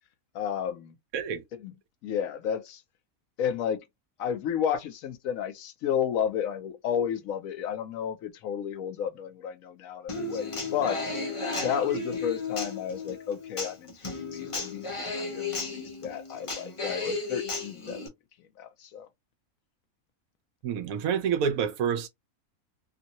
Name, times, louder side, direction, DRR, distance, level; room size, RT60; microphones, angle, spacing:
voice 1, 0.3-0.9 1.5-1.7 2.0-2.8 3.4-3.8 4.2-11.1 11.5-18.0 18.6-19.1, left 8 dB, 75° left, 1.0 m, -32 dB
voice 2, 1.1-1.4 20.6-22.1, right 7 dB, 75° right, 1.1 m, -28 dB
Human voice / Acoustic guitar, 10.1-18.1, left 3 dB, 25° left, 0.8 m, -34 dB
2.8 x 2.6 x 2.9 m
omnidirectional pair, 1.5 m